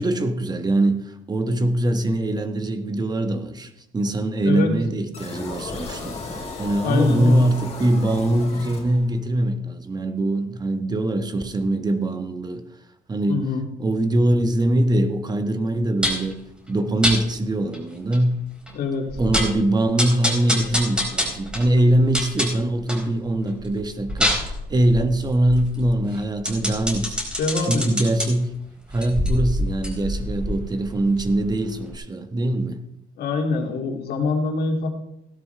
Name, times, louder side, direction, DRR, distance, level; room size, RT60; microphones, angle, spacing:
voice 1, 0.0-12.6 13.1-13.4 13.8-16.4 16.7-18.5 19.2-27.2 27.7-28.6 28.9-32.8, right 1 dB, 25° right, 1.3 m, -22 dB
voice 2, 4.4-4.8 6.8-7.5 13.3-13.7 18.7-19.2 27.4-27.9 33.2-34.9, left 4 dB, 70° left, 2.6 m, -24 dB
sound 1, 5.1-9.4, left 3 dB, 40° left, 3.6 m, -35 dB
sound 2, 16.0-16.3 17.0-17.2 17.7-17.8 18.1-18.2 18.7-18.8 19.1-19.6 20.0-23.1 23.5-28.3 28.9-31.6 31.9-32.0, left 1 dB, 5° right, 4.3 m, -26 dB
17.0 x 12.5 x 3.4 m
cardioid pair, 110°, 17 cm